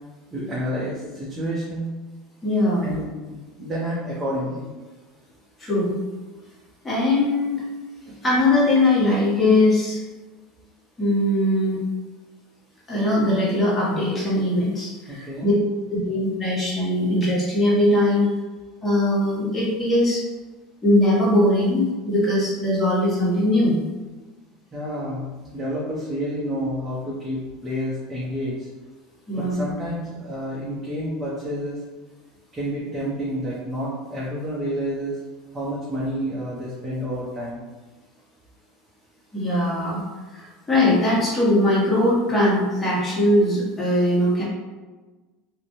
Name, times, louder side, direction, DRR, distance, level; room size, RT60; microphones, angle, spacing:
voice 1, 0.3-1.9 2.8-4.7 15.1-15.5 24.7-28.7 29.4-31.8 32.5-35.2 35.5-37.6, equal, 20° right, -7 dB, 0.6 m, -29 dB
voice 2, 2.4-2.9 5.6-6.0 6.8-7.6 8.2-10.0 11.0-11.8 12.9-15.5 15.9-18.3 18.8-20.2 20.8-23.8 29.3-29.6 39.3-40.0 40.3-44.4, left 1 dB, 15° left, -7 dB, 1.1 m, -20 dB
2.5 x 2.1 x 3.0 m, 1.3 s
supercardioid pair, 110°, 0 cm